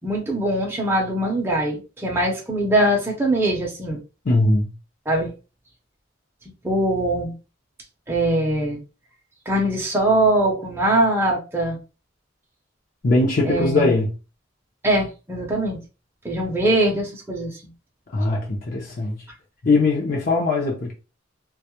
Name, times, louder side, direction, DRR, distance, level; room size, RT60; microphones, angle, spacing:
voice 1, 0.0-4.0 5.1-5.3 6.6-7.3 8.1-8.8 9.5-11.8 13.4-13.9 14.8-15.8 16.2-17.6, right 1 dB, 15° right, 0.5 m, -22 dB
voice 2, 4.3-4.7 13.0-14.1 18.1-19.2 19.6-20.9, left 2 dB, 50° left, 0.6 m, -20 dB
2.2 x 2.0 x 2.8 m
head